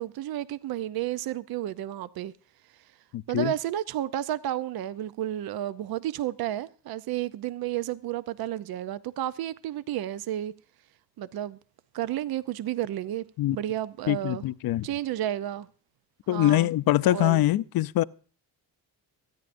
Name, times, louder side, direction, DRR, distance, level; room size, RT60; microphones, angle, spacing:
voice 1, 0.0-2.3 3.3-10.5 11.2-11.6 11.9-13.2 13.5-14.4 14.8-15.7 16.3-16.7 17.0-17.4, right 12 dB, 65° right, 0.6 m, -31 dB
voice 2, 3.1-3.5 13.4-13.6 14.1-14.9 16.3-18.0, left 15 dB, 65° left, 0.5 m, -23 dB
23.5 x 9.8 x 2.6 m
cardioid pair, 85°, 40 cm